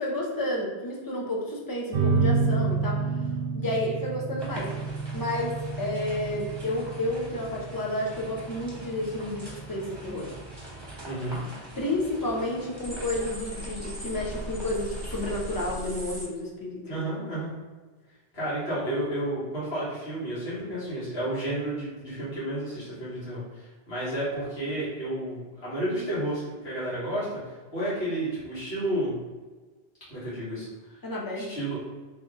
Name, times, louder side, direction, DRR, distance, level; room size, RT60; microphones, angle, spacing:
voice 1, 0.0-3.0 3.5-4.7 5.1-10.3 11.8-17.1 31.0-31.5, left 1 dB, 25° left, -2 dB, 0.5 m, -31 dB
sound 1, 1.9-12.9, right 4 dB, 65° right, 0.7 m, -31 dB
sound 2, 4.4-15.7, equal, 25° right, 0.9 m, -44 dB
voice 2, 11.0-11.4 16.9-17.5 18.3-29.2 30.1-31.0 31.3-31.8, right 1 dB, 75° left, -10 dB, 1.9 m, -31 dB
sound 3, 12.8-16.2, equal, 5° left, 1.1 m, -37 dB
3.1 x 2.8 x 3.5 m, 1.3 s
omnidirectional pair, 1.1 m